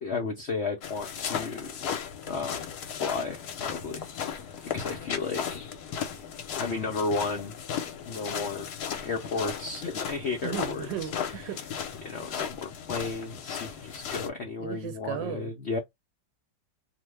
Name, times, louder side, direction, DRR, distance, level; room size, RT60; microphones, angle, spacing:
voice 1, 0.0-1.9 2.3-2.7 3.0-4.0 4.7-5.7 6.6-7.5 8.0-8.7 9.0-10.9 12.0-15.8, left 4 dB, 85° left, 0.6 m, -33 dB
sound 1, 0.8-14.3, left 8 dB, 65° left, 1.2 m, -36 dB
voice 2, 10.4-11.9 14.6-15.5, right 10 dB, 80° right, 1.3 m, -36 dB
2.9 x 2.1 x 3.2 m
omnidirectional pair, 2.0 m